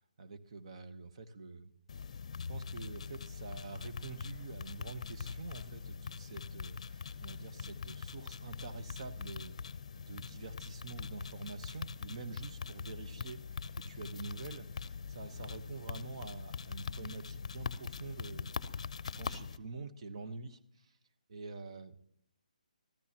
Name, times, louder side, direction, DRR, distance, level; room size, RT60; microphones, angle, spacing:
voice 1, 0.0-1.7 2.5-9.6 10.0-13.4 13.7-18.5 19.2-21.0 21.3-21.9, right 4 dB, 45° right, 8 dB, 1.1 m, -46 dB
sound 1, 1.9-19.6, left 6 dB, 50° left, 0.6 m, -43 dB
19.5 x 13.5 x 2.9 m, 0.69 s
hypercardioid pair, 155°, 4 cm